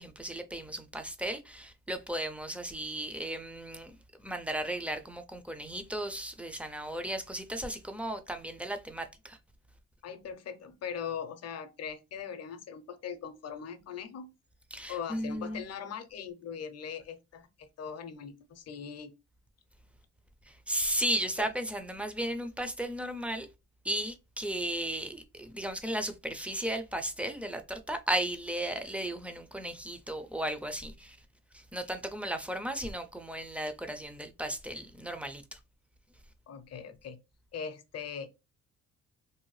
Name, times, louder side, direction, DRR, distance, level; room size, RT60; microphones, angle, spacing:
voice 1, 0.0-9.4 14.7-15.6 20.4-23.5 23.8-31.2 31.5-35.6, right 1 dB, 5° right, 0.4 m, -35 dB
voice 2, 10.0-14.3 14.9-19.2 21.4-21.5 36.5-37.2 37.5-38.3, left 7 dB, 55° left, 0.6 m, -40 dB
2.7 x 2.1 x 3.1 m
cardioid pair, 90°, 30 cm